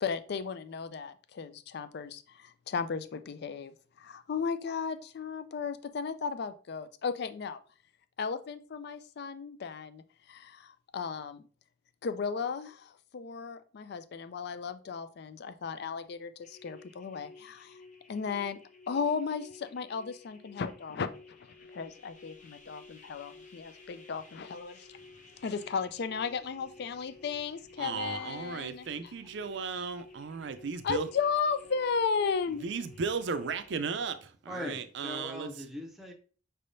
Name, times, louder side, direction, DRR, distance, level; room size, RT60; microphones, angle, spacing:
voice 1, 0.0-7.6 8.2-11.4 12.0-17.8 18.1-18.6 18.9-21.1 21.7-24.9 25.4-29.1 30.8-32.6, left 5 dB, 55° left, 0.4 m, -35 dB
sound 1, 16.4-33.8, left 3 dB, 40° left, 0.8 m, -54 dB
voice 2, 25.0-25.4 27.9-28.3 28.7-28.8 34.5-36.1, left 1 dB, ahead, 0.6 m, -42 dB
voice 3, 27.8-31.1 32.6-34.2 34.5-35.5, right 5 dB, 65° right, 0.5 m, -35 dB
5.4 x 3.4 x 2.6 m
head